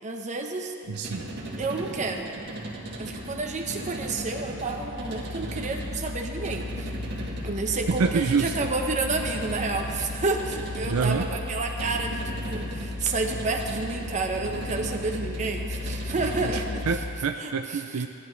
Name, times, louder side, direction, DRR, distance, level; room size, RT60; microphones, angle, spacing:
voice 1, 0.0-0.7 1.6-2.3 3.0-6.9 7.4-16.9 17.4-17.8, right 3 dB, 35° right, 2 dB, 1.0 m, -30 dB
sound 1, 0.8-17.0, right 1 dB, 50° right, 1.8 m, -37 dB
voice 2, 0.9-1.3 7.9-8.5 10.9-11.3 16.4-18.1, right 5 dB, 70° right, 5 dB, 0.5 m, -27 dB
sound 2, 2.8-17.4, left 3 dB, 30° left, 0.4 m, -37 dB
18.0 x 11.0 x 3.2 m, 2.5 s
head